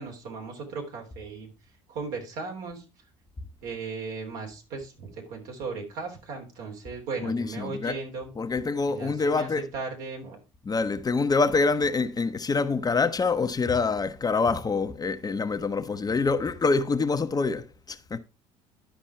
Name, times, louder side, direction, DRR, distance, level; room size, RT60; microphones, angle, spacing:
voice 1, 0.0-1.5 1.9-2.8 3.6-8.3 8.9-10.4, right 4 dB, 75° right, 3.3 m, -37 dB
voice 2, 7.2-8.0 8.4-9.6 10.7-18.2, left 4 dB, 25° left, 0.9 m, -26 dB
11.5 x 5.2 x 4.4 m
supercardioid pair, 80°, 15 cm